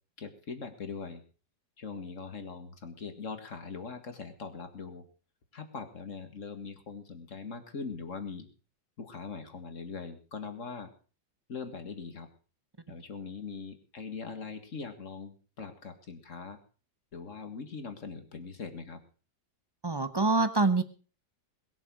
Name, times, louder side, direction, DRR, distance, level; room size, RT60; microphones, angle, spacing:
voice 1, 0.2-1.2 1.8-5.0 5.5-8.5 9.0-10.9 11.5-12.3 12.9-16.6 17.1-19.0, left 5 dB, 45° left, 8 dB, 2.2 m, -41 dB
voice 2, 19.8-20.8, right 3 dB, 20° right, 11 dB, 0.7 m, -25 dB
21.5 x 7.2 x 6.3 m, 0.39 s
omnidirectional pair, 1.9 m